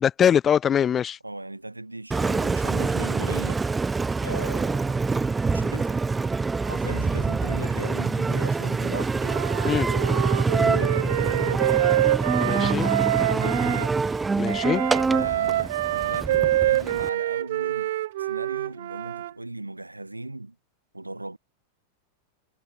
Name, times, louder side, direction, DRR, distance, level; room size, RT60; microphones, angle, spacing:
voice 1, 0.0-1.2 9.6-9.9 12.4-12.9 14.4-14.8, left 8 dB, 25° left, 1.7 m, -22 dB
voice 2, 1.2-3.6 4.2-5.0 5.5-6.0 6.6-9.4 10.5-11.7 12.4-14.1 15.0-17.9 18.2-20.6 20.9-21.4, right 2 dB, 85° right, 7.1 m, -37 dB
Engine, 2.1-17.1, right 4 dB, 10° right, 2.7 m, -25 dB
Wind instrument woodwind instrument, 9.2-13.9 14.4-19.3, right 15 dB, 55° right, 1.3 m, -26 dB
figure-of-eight pair, 90°, 0 cm